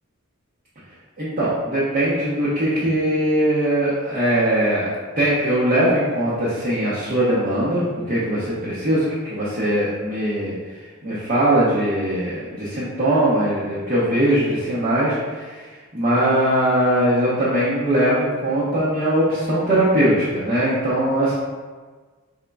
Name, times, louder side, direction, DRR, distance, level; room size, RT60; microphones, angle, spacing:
voice 1, 1.2-4.9 5.2-10.6 11.0-15.7 15.9-21.3, right 1 dB, 40° right, -9 dB, 0.8 m, -20 dB
5.2 x 3.6 x 2.3 m, 1.4 s
head